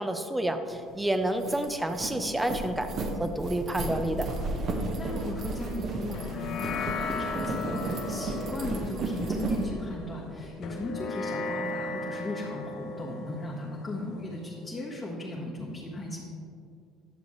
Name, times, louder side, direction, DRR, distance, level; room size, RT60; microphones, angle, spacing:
voice 1, 0.0-2.9 3.2-4.3, right 1 dB, 10° right, 7 dB, 0.7 m, -29 dB
sound 1, 0.8-0.9 1.2-9.6, right 3 dB, 50° right, 1.2 m, -33 dB
voice 2, 4.7-16.2, left 1 dB, 30° left, -6 dB, 1.5 m, -37 dB
sound 2, 6.1-14.8, left 4 dB, 55° left, 0.5 m, -37 dB
10.5 x 6.8 x 3.2 m, 2.4 s
hypercardioid pair, 65°, 0 cm